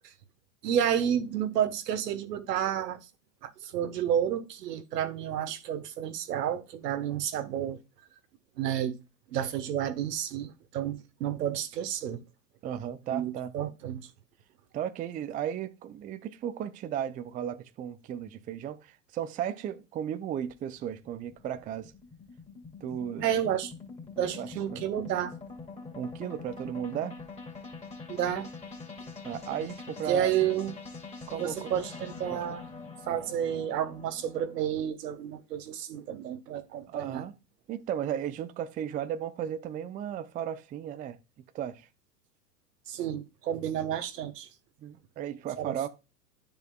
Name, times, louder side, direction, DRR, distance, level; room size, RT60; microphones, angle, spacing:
voice 1, 0.6-3.0 3.4-7.8 8.6-8.9 9.3-12.2 13.1-14.0 23.2-23.7 24.2-25.3 28.1-28.5 30.1-30.7 31.3-32.6 33.1-37.2 42.9-44.5 45.6-45.9, right 10 dB, 75° right, 1.3 m, -30 dB
voice 2, 12.6-13.5 14.7-21.9 22.8-23.3 24.4-24.8 26.0-27.2 29.2-30.3 31.3-31.7 32.3-32.4 36.9-37.3 37.7-41.2 41.5-41.9 44.8-45.9, right 9 dB, 20° right, 0.4 m, -35 dB
sound 1, 20.5-34.7, left 4 dB, 15° left, 2.4 m, -44 dB
10.0 x 6.8 x 2.3 m
hypercardioid pair, 105°, 48 cm